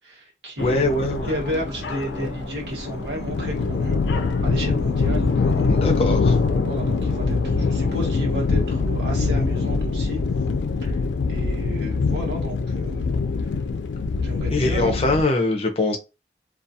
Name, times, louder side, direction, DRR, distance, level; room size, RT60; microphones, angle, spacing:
voice 1, 0.0-4.0 4.4-5.8 6.5-10.2 10.8-11.0 11.3-13.1 14.2-15.0, equal, 85° right, 1.1 m, -32 dB
sound 1, 0.6-15.2, left 4 dB, 85° left, 0.3 m, -24 dB
voice 2, 0.6-1.3 5.7-6.4 14.5-16.0, left 2 dB, 35° left, 0.5 m, -22 dB
sound 2, 0.8-9.8, right 1 dB, 60° right, 0.8 m, -38 dB
2.3 x 2.3 x 2.7 m
head